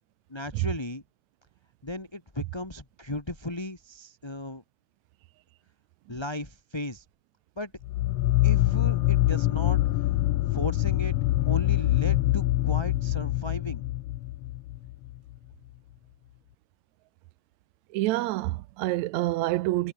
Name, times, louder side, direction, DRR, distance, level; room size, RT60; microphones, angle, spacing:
voice 1, 0.3-1.0 1.8-4.6 6.1-7.0 7.6-7.7 8.4-9.8 10.5-11.1 11.5-13.8, left 1 dB, 10° left, 2.3 m, -35 dB
sound 1, 7.8-15.2, left 16 dB, 75° left, 1.4 m, -25 dB
voice 2, 17.9-19.9, right 18 dB, 80° right, 1.9 m, -27 dB
omnidirectional pair, 3.3 m